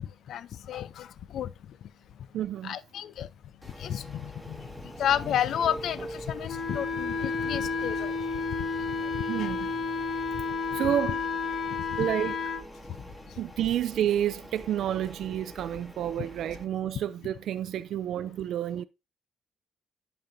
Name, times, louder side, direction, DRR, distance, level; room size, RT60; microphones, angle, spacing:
voice 1, 0.3-1.1 1.3-1.5 2.6-3.3 3.8-4.6 5.0-8.2 9.4-9.5, left 10 dB, 70° left, 0.5 m, -31 dB
voice 2, 2.3-2.8 9.3-9.7 10.7-11.2 12.0-12.4 13.4-18.8, right 10 dB, 75° right, 0.4 m, -29 dB
sound 1, 3.6-16.6, equal, 10° left, 2.1 m, -47 dB
Telephone, 4.4-10.5, right 2 dB, 20° right, 1.5 m, -45 dB
Wind instrument woodwind instrument, 6.5-12.6, left 4 dB, 40° left, 0.8 m, -31 dB
10.5 x 5.3 x 2.6 m
cardioid pair, 90°, 0 cm